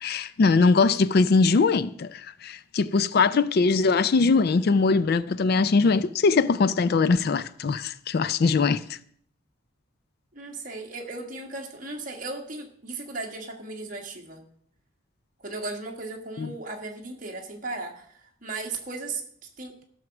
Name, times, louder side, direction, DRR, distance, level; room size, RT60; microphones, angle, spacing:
voice 1, 0.0-9.0 16.4-16.5, left 4 dB, 50° left, 0.4 m, -21 dB
voice 2, 10.3-14.4 15.4-18.1 18.4-19.2 19.6-19.7, right 3 dB, 40° right, 1.7 m, -36 dB
14.0 x 6.4 x 5.9 m
head